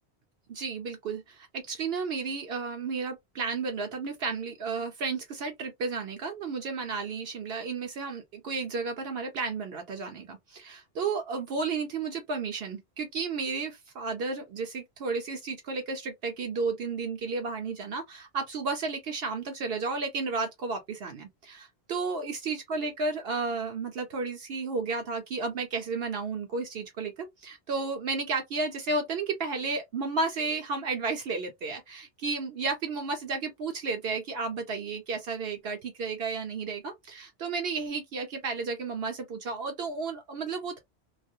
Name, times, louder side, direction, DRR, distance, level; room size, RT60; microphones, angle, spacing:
voice 1, 0.5-40.8, right 4 dB, 70° right, 0.8 m, -33 dB
2.3 x 2.1 x 2.6 m
omnidirectional pair, 1.1 m